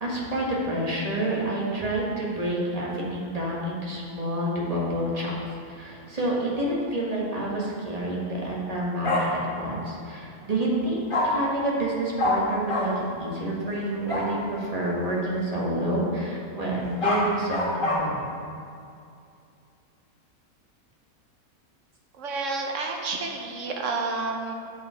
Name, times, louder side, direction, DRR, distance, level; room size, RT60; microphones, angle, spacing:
voice 1, 0.0-5.4 5.7-12.9 13.2-18.2, right 1 dB, 25° right, -4 dB, 1.3 m, -28 dB
Bark, 9.0-9.2 11.1-11.2 12.2-12.3 12.7-12.8 14.1-14.3 16.8-17.9, left 2 dB, 35° left, 1.6 m, -24 dB
voice 2, 22.2-24.5, right 3 dB, 60° right, 1 dB, 1.0 m, -30 dB
7.9 x 5.4 x 4.4 m, 2.5 s
omnidirectional pair, 1.6 m